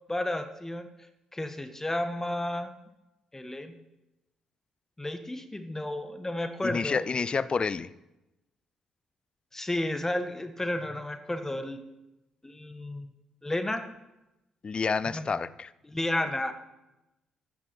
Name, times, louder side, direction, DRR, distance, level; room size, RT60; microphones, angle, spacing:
voice 1, 0.1-0.9 1.3-2.7 3.3-3.7 5.0-7.0 9.5-11.8 12.4-13.1 13.4-13.8 15.1-15.2 15.9-16.5, left 1 dB, 15° left, 7 dB, 1.7 m, -32 dB
voice 2, 6.6-7.9 14.6-15.7, left 5 dB, 40° left, 18 dB, 0.7 m, -29 dB
16.0 x 11.5 x 4.6 m, 0.95 s
figure-of-eight pair, 40°, 3 cm